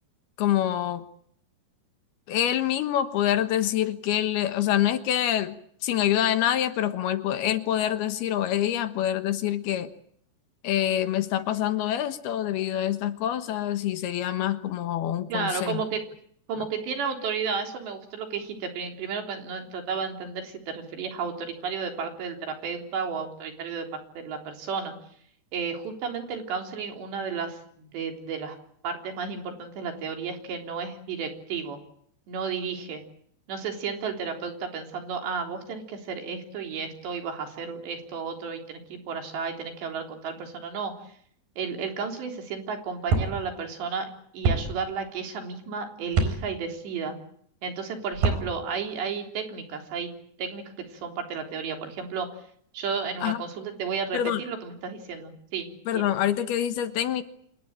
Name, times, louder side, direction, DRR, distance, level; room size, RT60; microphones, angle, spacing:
voice 1, 0.4-1.0 2.3-9.9 10.6-15.8 53.2-53.4 54.1-54.4 55.9-57.2, left 11 dB, 70° left, 10 dB, 3.1 m, -26 dB
voice 2, 15.3-16.0 16.5-23.9 24.2-24.9 25.5-28.6 28.8-31.8 32.3-33.0 33.5-40.9 41.6-44.1 44.3-47.2 47.6-50.1 50.4-52.3 52.7-55.7 55.9-56.1, right 5 dB, 85° right, 4 dB, 5.8 m, -33 dB
sound 1, 43.1-43.3 44.4-44.6 46.1-46.3 48.1-48.4, right 4 dB, 55° right, 6.0 m, -23 dB
27.0 x 19.0 x 8.9 m, 0.66 s
omnidirectional pair, 4.9 m